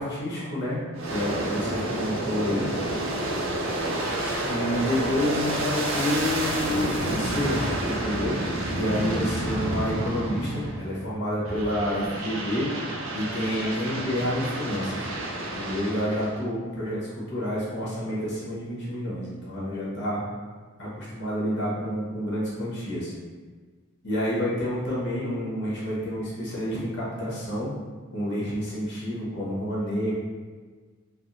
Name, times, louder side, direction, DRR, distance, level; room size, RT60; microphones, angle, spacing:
voice 1, 0.0-2.7 4.5-8.4 8.7-12.7 13.1-15.1 15.5-20.2 20.8-23.1 24.0-27.7 28.1-30.2, equal, 60° left, -7 dB, 1.1 m, -29 dB
Aircraft, 0.9-11.0 11.5-16.4, right 1 dB, 85° right, 0.5 m, -29 dB
3.5 x 2.0 x 2.6 m, 1.5 s
head